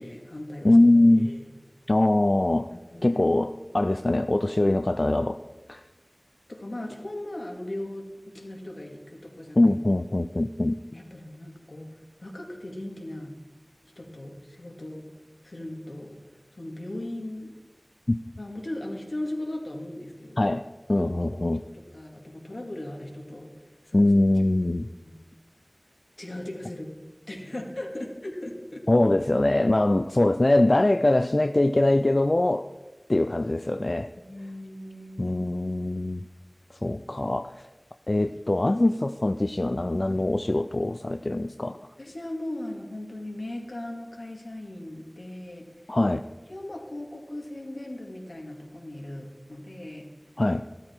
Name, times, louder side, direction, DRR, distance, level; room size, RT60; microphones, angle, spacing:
voice 1, 0.0-0.8 1.1-1.4 2.7-3.2 6.5-9.8 10.9-11.9 12.2-13.3 14.0-15.0 15.4-16.2 16.6-17.5 18.4-20.5 21.0-21.1 21.7-23.5 23.8-24.1 25.0-25.2 26.2-26.9 27.3-28.8 34.2-35.4 42.0-45.7 46.5-50.1, left 1 dB, 85° left, 1 dB, 2.2 m, -38 dB
voice 2, 0.6-1.3 1.9-2.7 3.0-5.4 5.7-5.8 9.6-10.8 18.1-18.2 20.4-20.6 20.9-21.6 23.9-24.9 28.9-32.7 33.1-34.1 35.2-36.2 36.8-37.6 38.1-41.8 45.9-46.2 50.4-50.6, left 1 dB, 60° left, 9 dB, 0.4 m, -22 dB
14.0 x 13.0 x 4.5 m, 1.2 s
wide cardioid pair, 40°, 0 cm